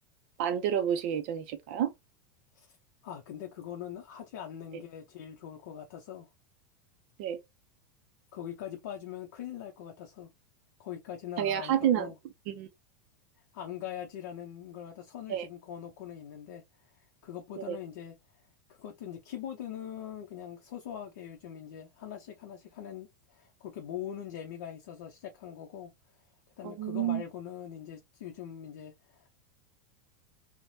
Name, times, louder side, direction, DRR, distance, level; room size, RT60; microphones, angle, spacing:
voice 1, 0.4-1.9 7.2-7.4 11.4-12.1 12.5-12.7 15.3-15.5 17.6-17.8 26.6-27.2, right 10 dB, 40° right, 0.4 m, -29 dB
voice 2, 3.0-6.3 8.3-10.3 10.8-12.2 13.5-16.6 16.9-18.1 18.7-25.9 26.6-29.3, left 9 dB, 60° left, 0.6 m, -42 dB
3.2 x 2.1 x 2.6 m
supercardioid pair, 175°, 10 cm